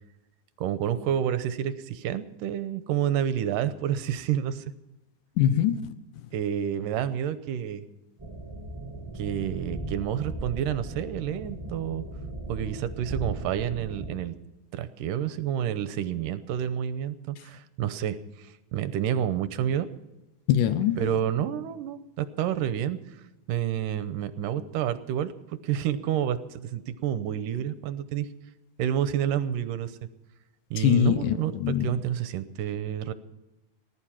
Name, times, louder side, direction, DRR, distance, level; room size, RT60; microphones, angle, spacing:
voice 1, 0.6-4.6 6.3-7.9 9.2-12.1 12.5-14.3 14.7-19.9 21.0-23.0 23.5-28.3 28.8-30.0 30.7-33.1, right 10 dB, 75° right, 12 dB, 2.3 m, -29 dB
voice 2, 5.4-5.9 20.5-21.0 30.8-32.0, left 10 dB, 75° left, 12 dB, 2.1 m, -23 dB
sound 1, 8.2-14.2, right 2 dB, 15° right, 1.0 m, -37 dB
19.5 x 11.5 x 5.8 m, 1.0 s
omnidirectional pair, 4.2 m